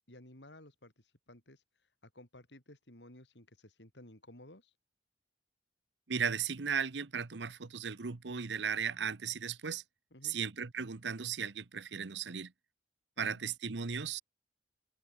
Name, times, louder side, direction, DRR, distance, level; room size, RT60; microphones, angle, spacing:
voice 1, 0.0-1.6 2.1-4.7 10.1-10.4 13.3-13.4, left 1 dB, 80° left, 8.0 m, -55 dB
voice 2, 6.1-9.8 10.2-12.5 13.2-14.2, right 6 dB, 85° right, 0.9 m, -36 dB
head